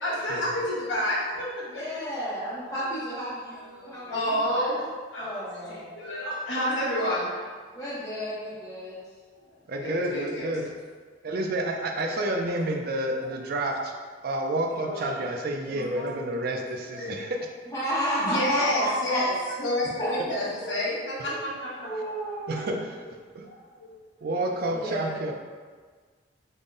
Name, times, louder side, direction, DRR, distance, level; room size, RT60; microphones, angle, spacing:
voice 1, 0.0-1.8 3.7-4.8 5.1-7.5 9.3-9.4 9.7-10.5 14.8-15.1 15.6-16.1 16.9-17.2 18.1-21.9 23.4-23.9, left 1 dB, 75° left, -8 dB, 1.1 m, -30 dB
voice 2, 1.7-4.8 5.2-5.9 7.7-9.0 12.1-12.4 17.7-19.2 20.0-20.1 21.2-21.4 21.8-22.8 24.7-25.2, equal, 15° left, -12 dB, 0.6 m, -32 dB
voice 3, 9.7-10.6 11.2-14.0 14.2-17.4 22.5-23.5 24.2-25.3, right 1 dB, 50° right, 3 dB, 0.4 m, -29 dB
3.6 x 2.1 x 3.7 m, 1.5 s
head